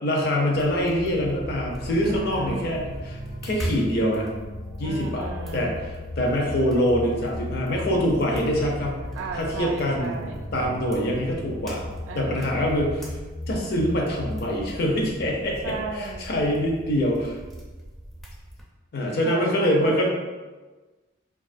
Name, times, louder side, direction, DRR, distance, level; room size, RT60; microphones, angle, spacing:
voice 1, 0.0-4.3 4.8-5.9 6.2-9.0 9.4-10.2 10.5-11.8 12.2-13.1 13.5-17.4 18.9-20.1, equal, 55° left, -1 dB, 0.5 m, -24 dB
sound 1, 0.5-18.6, right 1 dB, ahead, 0.4 m, -40 dB
sound 2, 1.0-14.6, left 1 dB, 75° left, 1.3 m, -37 dB
voice 2, 2.0-2.7 4.8-5.7 9.1-10.5 12.1-12.8 15.6-16.4 19.1-20.1, right 4 dB, 75° right, 4 dB, 0.3 m, -35 dB
2.5 x 2.3 x 2.4 m, 1.3 s
head